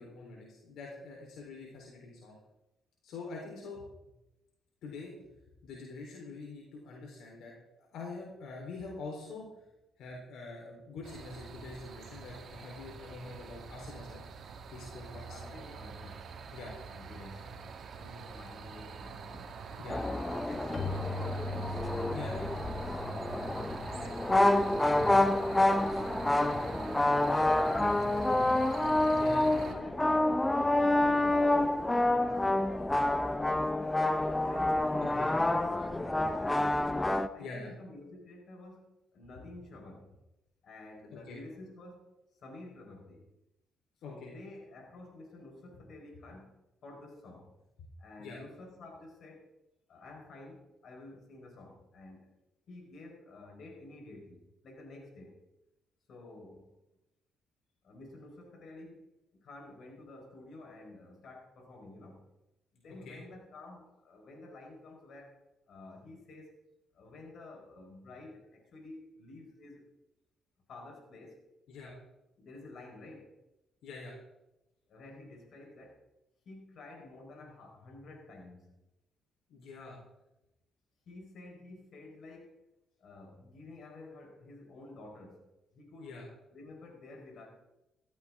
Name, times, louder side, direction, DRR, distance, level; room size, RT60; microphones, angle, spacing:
voice 1, 0.0-2.4 3.0-3.8 4.8-5.1 5.6-9.5 10.0-14.2 14.7-15.6 16.5-16.7 19.8-20.0 22.1-22.5 25.0-25.2 29.2-29.5 35.0-35.3 37.4-37.7 41.3-41.4 44.0-44.3 48.2-48.4 63.0-63.2 71.7-71.9 73.8-74.1 79.5-80.0 86.0-86.3, left 3 dB, 80° left, -1 dB, 3.8 m, -45 dB
sound 1, 11.0-29.7, right 5 dB, 60° right, 1.9 m, -45 dB
voice 2, 15.3-16.4 16.9-17.6 18.0-21.8 23.2-28.5 29.0-30.4 30.7-32.6 34.3-36.9 37.3-40.2 40.6-42.1 42.3-43.3 44.1-47.5 48.0-49.5 49.9-52.3 52.7-55.4 56.1-56.7 57.8-59.1 59.3-62.3 62.7-66.6 66.9-69.9 70.7-71.4 72.4-73.3 74.9-76.0 76.4-78.8 81.1-82.6 83.0-86.1 86.5-87.5, left 2 dB, 65° left, 1 dB, 4.6 m, -51 dB
sound 2, 19.9-37.3, left 1 dB, 15° left, 0.7 m, -28 dB
Keyboard (musical), 20.7-25.2, left 3 dB, 45° left, 1.6 m, -41 dB
14.5 x 14.5 x 3.7 m, 0.93 s
cardioid pair, 90°, 0 cm